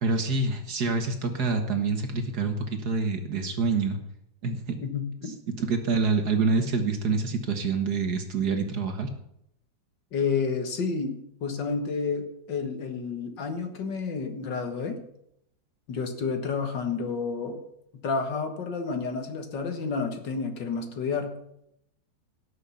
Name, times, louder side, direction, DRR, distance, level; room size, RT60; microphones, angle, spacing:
voice 1, 0.0-4.0 4.4-4.8 5.6-9.1, right 4 dB, 55° right, 6 dB, 1.9 m, -26 dB
voice 2, 4.8-5.3 10.1-15.0 15.9-17.6 18.0-21.4, left 5 dB, 65° left, 6 dB, 2.1 m, -30 dB
17.5 x 6.5 x 7.0 m, 0.76 s
omnidirectional pair, 2.1 m